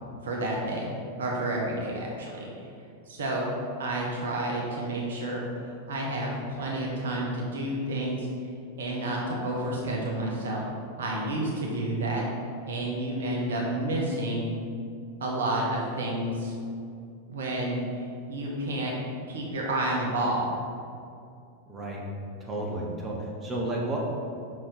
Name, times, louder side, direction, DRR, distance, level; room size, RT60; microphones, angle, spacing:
voice 1, 0.2-2.5 3.1-6.3 6.6-8.3 8.8-10.6 11.0-12.2 12.7-14.5 15.2-16.5 17.3-18.9 19.3-20.5, right 1 dB, 60° right, -2 dB, 1.2 m, -30 dB
voice 2, 21.7-22.0 22.4-24.1, right 1 dB, 20° right, -3 dB, 1.5 m, -32 dB
6.1 x 5.9 x 5.0 m, 2.4 s
figure-of-eight pair, 90°, 0 cm